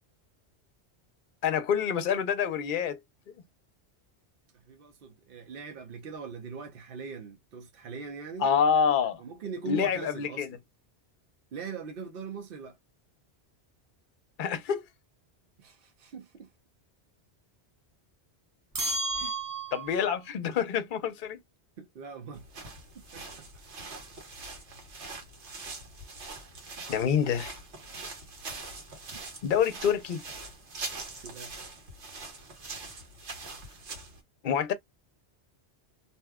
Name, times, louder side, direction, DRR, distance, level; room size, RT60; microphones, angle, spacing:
voice 1, 1.4-3.0 8.4-9.2 9.7-10.6 14.4-14.8 19.7-21.4 26.9-27.5 29.4-30.2 34.4-34.7, left 7 dB, 55° left, 0.7 m, -27 dB
voice 2, 4.7-8.5 9.2-10.5 11.5-12.8 15.6-16.5 19.2-19.4 21.8-22.4 22.9-23.5 29.1-29.5 31.2-31.5, right 5 dB, 60° right, 0.8 m, -41 dB
sound 1, 18.7-20.1, right 2 dB, 30° right, 0.4 m, -32 dB
sound 2, 22.3-34.2, right 3 dB, 90° right, 1.4 m, -43 dB
2.8 x 2.1 x 3.4 m
omnidirectional pair, 1.1 m